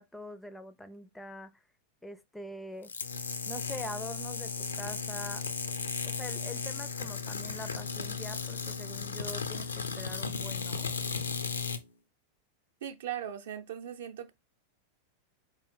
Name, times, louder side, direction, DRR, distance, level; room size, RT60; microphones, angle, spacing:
voice 1, 0.0-1.6 2.0-2.9 3.5-5.5 6.0-10.9, left 1 dB, 5° left, 0.4 m, -44 dB
sound 1, 2.8-11.8, left 5 dB, 75° left, 0.5 m, -35 dB
voice 2, 12.8-14.3, right 10 dB, 60° right, 0.7 m, -38 dB
4.3 x 3.1 x 3.5 m
figure-of-eight pair, 90°, 0 cm